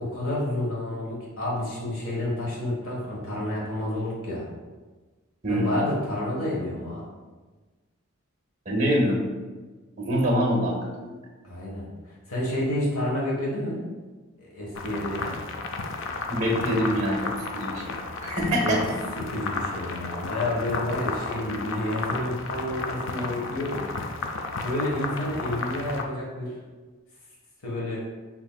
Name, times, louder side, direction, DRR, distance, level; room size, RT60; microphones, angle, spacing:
voice 1, 0.0-4.5 5.5-7.1 11.4-11.8 12.3-13.8 14.4-15.4 18.6-18.8 19.2-23.9 24.6-26.5 27.6-28.0, left 1 dB, 90° left, -4 dB, 1.2 m, -29 dB
voice 2, 5.4-5.8 8.7-9.3 10.0-10.8 11.0-11.1 16.3-18.0 18.2-18.8, equal, 35° right, 0 dB, 0.9 m, -25 dB
sound 1, 14.7-26.0, left 3 dB, 65° left, 0.4 m, -33 dB
5.8 x 2.9 x 2.2 m, 1.3 s
head